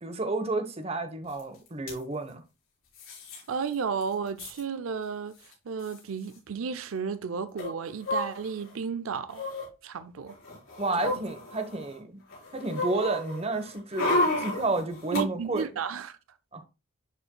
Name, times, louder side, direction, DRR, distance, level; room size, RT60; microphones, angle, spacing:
voice 1, 0.0-2.4 10.8-12.2 12.5-15.7 16.5-16.6, right 2 dB, 30° right, 1.0 m, -31 dB
sound 1, 1.4-1.5 1.7-2.0 3.0-3.4 3.7-3.8 4.0-4.6 5.5-5.6 5.8-6.0 7.6-8.7 9.3-9.7 10.3-11.9 12.3-15.2 15.6-15.7, left 1 dB, 80° left, 4.5 m, -32 dB
voice 2, 3.5-5.4 5.7-9.5 9.8-10.4 11.0-11.1 15.1-16.2, right 6 dB, 80° right, 0.5 m, -33 dB
11.0 x 4.4 x 2.3 m
head